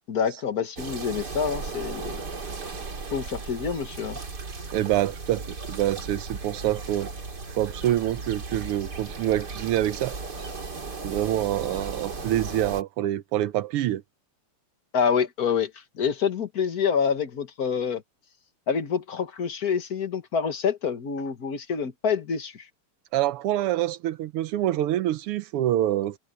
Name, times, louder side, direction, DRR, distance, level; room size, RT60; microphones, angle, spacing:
voice 1, 0.1-2.2 3.1-4.2 14.9-15.7 16.0-18.0 18.7-22.7, left 6 dB, 45° left, 1.8 m, -27 dB
sound 1, 0.8-12.8, right 4 dB, 50° right, 3.4 m, -36 dB
voice 2, 4.7-7.1 7.5-10.2 11.0-14.0 23.1-26.2, right 13 dB, 85° right, 1.7 m, -26 dB
omnidirectional pair, 2.4 m